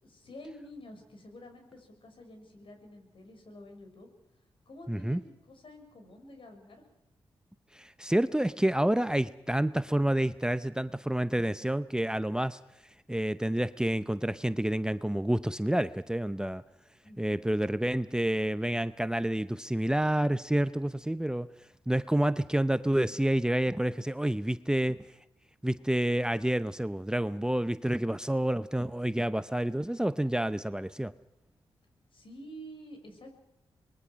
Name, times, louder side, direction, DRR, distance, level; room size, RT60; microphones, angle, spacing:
voice 1, 0.0-4.1 4.7-6.8 17.0-17.4 32.1-33.3, equal, 60° left, 5 dB, 6.6 m, -49 dB
voice 2, 4.9-5.2 7.7-12.6 13.1-16.6 17.2-21.5 21.9-25.0 25.6-31.1, right 1 dB, 5° right, 13 dB, 0.8 m, -29 dB
25.0 x 21.5 x 6.3 m, 0.89 s
cardioid pair, 55°, 10 cm